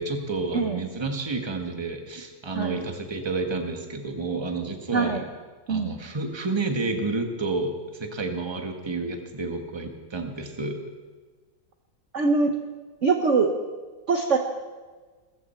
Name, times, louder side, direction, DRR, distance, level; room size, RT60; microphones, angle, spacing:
voice 1, 0.0-5.2 5.7-10.8, right 3 dB, 15° right, 4 dB, 1.3 m, -30 dB
voice 2, 4.9-5.2 5.7-6.0 12.1-12.5 13.0-13.5 14.1-14.4, right 4 dB, 45° right, 4 dB, 1.1 m, -22 dB
21.0 x 14.5 x 4.4 m, 1.4 s
omnidirectional pair, 2.2 m